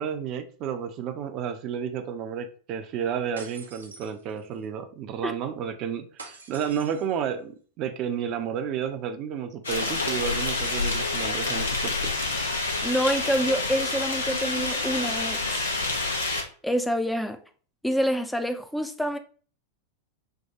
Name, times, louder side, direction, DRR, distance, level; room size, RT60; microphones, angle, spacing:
voice 1, 0.0-7.5 7.8-12.1, right 8 dB, 40° right, 0.6 m, -31 dB
sound 1, 3.4-4.6 6.2-7.2 10.2-11.4, right 3 dB, 75° right, 0.7 m, -45 dB
sound 2, 9.6-16.4, left 3 dB, 75° left, 0.9 m, -28 dB
voice 2, 12.8-15.6 16.6-17.4 17.8-19.2, equal, 5° left, 0.5 m, -27 dB
6.6 x 2.2 x 2.8 m
figure-of-eight pair, 90°, 0 cm